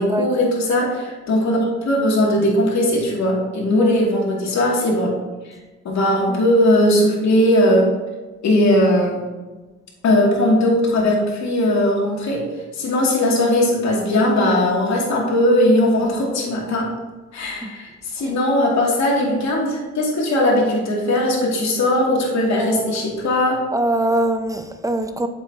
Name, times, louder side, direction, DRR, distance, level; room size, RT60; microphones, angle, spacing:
voice 1, 0.0-5.1 5.8-7.8 8.4-9.2 10.0-12.4 12.7-16.9 17.3-23.6, left 1 dB, 65° left, -2 dB, 2.5 m, -18 dB
voice 2, 22.5-23.2 23.7-25.3, right 1 dB, 10° right, 8 dB, 0.6 m, -23 dB
8.3 x 7.1 x 2.9 m, 1.2 s
cardioid pair, 90°, 30 cm